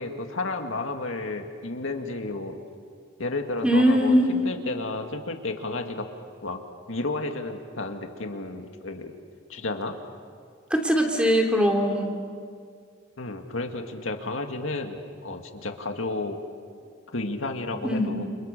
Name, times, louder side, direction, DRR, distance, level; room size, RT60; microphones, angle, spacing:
voice 1, 0.0-2.6 3.2-6.1 6.4-6.6 6.9-9.1 9.5-9.9 13.2-16.4 17.1-18.2, left 2 dB, 75° left, 4 dB, 2.1 m, -32 dB
voice 2, 3.6-4.3 10.7-12.1 17.8-18.1, equal, 5° right, 1 dB, 2.9 m, -21 dB
29.5 x 27.5 x 6.8 m, 2.1 s
head